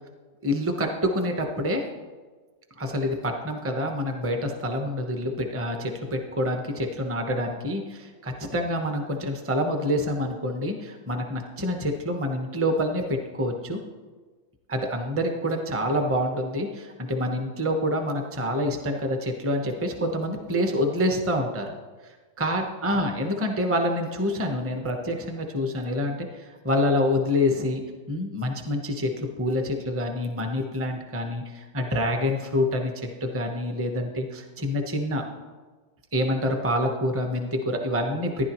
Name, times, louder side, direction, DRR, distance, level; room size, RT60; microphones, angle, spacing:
voice 1, 0.4-1.9 2.8-13.8 14.7-21.7 22.0-27.8 28.1-35.2 36.1-38.5, left 1 dB, 10° right, 3 dB, 0.7 m, -27 dB
15.0 x 10.5 x 3.1 m, 1.3 s
omnidirectional pair, 1.7 m